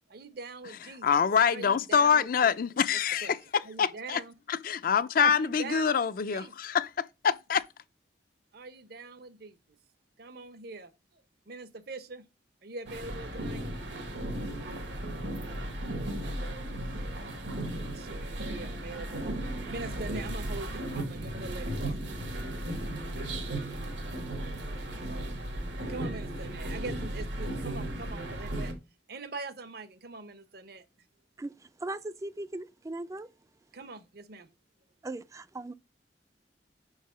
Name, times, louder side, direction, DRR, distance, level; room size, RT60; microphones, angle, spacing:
voice 1, 0.1-1.1 1.5-2.5 2.9-3.3 3.6-4.3 5.2-6.5 8.5-9.6 10.2-10.9 11.5-12.2 12.6-13.6 17.9-19.3 19.7-22.0 25.9-28.7 29.1-30.9 33.7-34.5, right 3 dB, 60° right, 0.7 m, -42 dB
voice 2, 1.0-4.2 4.5-7.6, left 7 dB, 50° left, 0.4 m, -26 dB
sound 1, 12.9-28.7, right 1 dB, 80° right, 1.6 m, -35 dB
voice 3, 31.4-33.3 35.0-35.7, right 2 dB, 15° right, 0.3 m, -38 dB
5.4 x 4.8 x 5.5 m
head